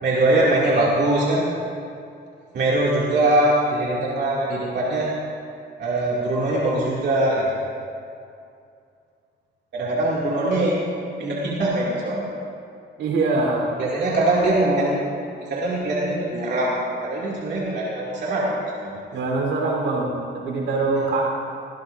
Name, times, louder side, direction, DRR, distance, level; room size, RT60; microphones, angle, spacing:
voice 1, 0.0-1.4 2.5-5.1 5.8-7.6 9.7-10.8 11.2-12.3 13.8-16.8 17.0-19.0 21.0-21.1, right 1 dB, 60° right, -6 dB, 2.5 m, -22 dB
voice 2, 13.0-13.7 19.1-21.2, right 3 dB, 80° right, -1 dB, 3.8 m, -23 dB
19.5 x 17.0 x 2.6 m, 2.4 s
cardioid pair, 90°, 20 cm